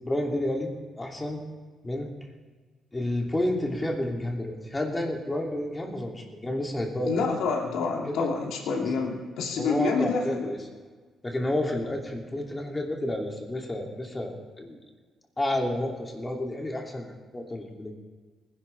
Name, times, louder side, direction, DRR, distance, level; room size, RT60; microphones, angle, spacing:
voice 1, 0.0-0.7 1.0-1.4 1.8-2.1 2.9-7.1 8.1-8.3 8.8-8.9 9.6-10.6 11.2-14.8 15.4-17.9, left 1 dB, 20° left, 0 dB, 2.9 m, -30 dB
voice 2, 7.0-10.5, left 4 dB, 85° left, -1 dB, 2.7 m, -28 dB
20.0 x 11.0 x 3.5 m, 1.4 s
cardioid pair, 90°, 0 cm